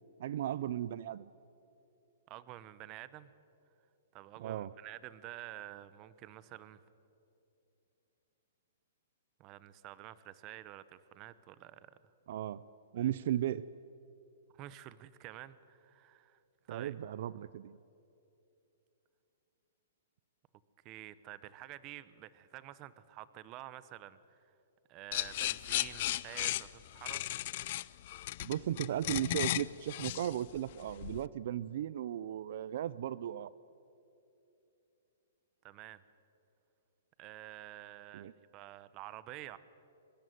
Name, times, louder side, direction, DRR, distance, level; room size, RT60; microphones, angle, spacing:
voice 1, 0.2-1.3 4.4-4.7 12.3-12.6 12.9-13.7 16.7-17.8 28.4-33.5 38.1-38.3, right 11 dB, 55° right, 17 dB, 0.5 m, -36 dB
voice 2, 2.3-3.3 4.1-6.8 9.4-12.0 13.0-13.1 14.5-16.4 16.7-17.0 20.8-24.5 24.9-27.2 35.6-36.0 37.2-39.6, right 14 dB, 25° right, 16 dB, 0.9 m, -49 dB
sound 1, 25.1-31.3, left 15 dB, 45° left, 0.6 m, -36 dB
24.0 x 22.0 x 9.3 m, 2.8 s
hypercardioid pair, 165°, 0 cm